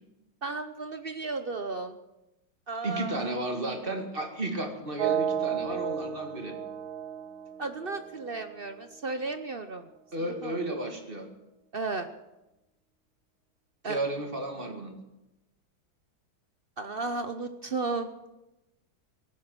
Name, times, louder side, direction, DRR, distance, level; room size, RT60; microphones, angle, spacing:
voice 1, 0.4-2.0 2.7-3.3 7.6-9.9 10.2-10.6 11.7-12.1 13.8-14.0 16.8-18.1, right 3 dB, 55° right, 8 dB, 0.6 m, -34 dB
voice 2, 2.8-6.6 10.1-11.3 13.8-14.9, right 1 dB, 30° right, 4 dB, 2.2 m, -33 dB
sound 1, 5.0-8.9, right 9 dB, 85° right, 1.5 m, -33 dB
17.5 x 10.5 x 7.6 m, 0.96 s
omnidirectional pair, 2.1 m